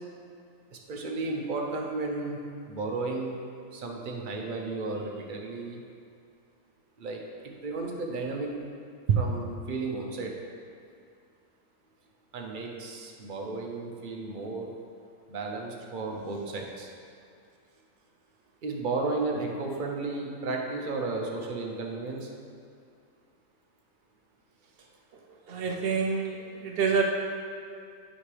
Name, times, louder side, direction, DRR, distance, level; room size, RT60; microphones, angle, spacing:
voice 1, 0.9-2.4 2.7-3.3 3.7-5.8 7.0-8.5 9.1-10.4 12.3-14.7 15.3-16.9 18.6-22.3, right 3 dB, 50° right, 1 dB, 0.6 m, -33 dB
voice 2, 25.5-26.4 26.6-27.0, right 6 dB, 90° right, 1 dB, 0.5 m, -27 dB
8.5 x 5.4 x 3.3 m, 2.3 s
omnidirectional pair, 1.6 m